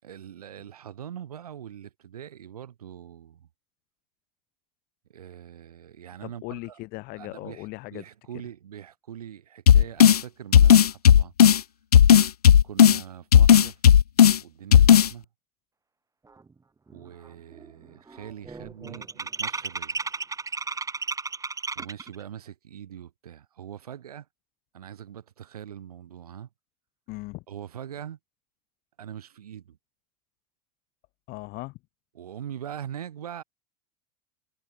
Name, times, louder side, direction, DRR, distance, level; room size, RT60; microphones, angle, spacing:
voice 1, 0.0-3.5 5.1-6.8 7.2-11.3 12.6-13.8 14.4-15.3 16.9-20.0 21.8-24.3 24.7-26.5 27.5-28.2 29.0-29.8 32.1-33.4, right 9 dB, 80° right, 5.6 m, -42 dB
voice 2, 6.2-8.0 27.1-27.4 31.3-31.8, left 23 dB, 55° left, 3.6 m, -38 dB
sound 1, 9.7-10.2 10.5-11.6 11.9-13.0 13.3-14.4 14.7-15.1, left 9 dB, 85° left, 0.6 m, -14 dB
sound 2, 16.5-16.6 16.9-17.3 17.5-22.2, right 4 dB, 15° right, 4.4 m, -34 dB
hypercardioid pair, 80°, 19 cm